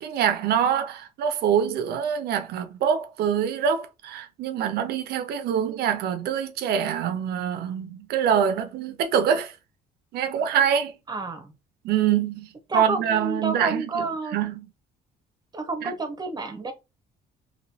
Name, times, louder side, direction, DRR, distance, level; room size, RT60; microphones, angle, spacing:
voice 1, 0.0-9.5 10.1-10.9 11.8-12.5 12.7-14.1 14.3-14.7 15.8-15.9, right 8 dB, 70° right, 0.6 m, -25 dB
voice 2, 11.1-11.5 12.7-14.4 15.5-16.7, right 3 dB, 25° right, 0.8 m, -30 dB
3.0 x 2.8 x 2.8 m
cardioid pair, 110°, 17 cm